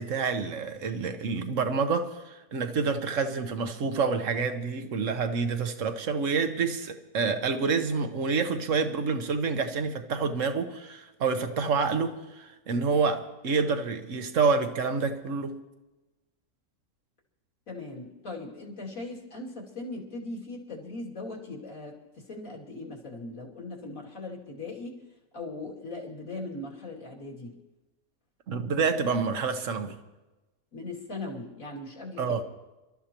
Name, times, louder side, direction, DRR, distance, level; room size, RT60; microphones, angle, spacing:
voice 1, 0.0-15.6 28.5-30.0 32.2-32.4, right 4 dB, 60° right, 1.4 m, -28 dB
voice 2, 17.7-25.0 25.3-27.6 30.7-32.4, left 2 dB, 70° left, 3.1 m, -39 dB
28.0 x 13.0 x 3.0 m
omnidirectional pair, 1.5 m